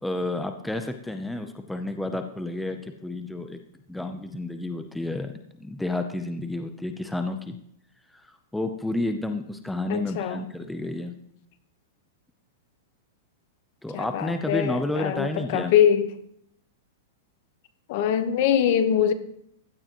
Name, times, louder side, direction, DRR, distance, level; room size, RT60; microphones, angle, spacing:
voice 1, 0.0-3.6 3.9-5.3 5.6-7.6 8.1-11.1 13.8-15.7, left 2 dB, 5° left, 0.6 m, -30 dB
voice 2, 9.9-10.4 13.9-16.1 17.9-19.1, left 9 dB, 50° left, 1.0 m, -23 dB
16.0 x 11.5 x 3.0 m
supercardioid pair, 155°, 0 cm